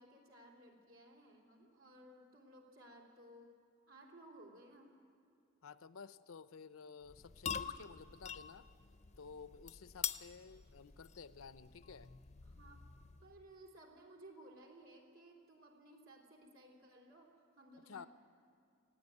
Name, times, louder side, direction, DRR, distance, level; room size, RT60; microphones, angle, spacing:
voice 1, 0.0-3.6 3.9-5.0 12.4-12.8 13.2-18.1, right 1 dB, 85° right, 1 dB, 3.4 m, -59 dB
voice 2, 5.6-8.7 9.2-12.1 17.9-18.1, left 5 dB, 85° left, 14 dB, 0.6 m, -53 dB
sound 1, 7.0-13.4, left 8 dB, 35° left, 0.5 m, -46 dB
19.0 x 15.0 x 9.5 m, 2.5 s
head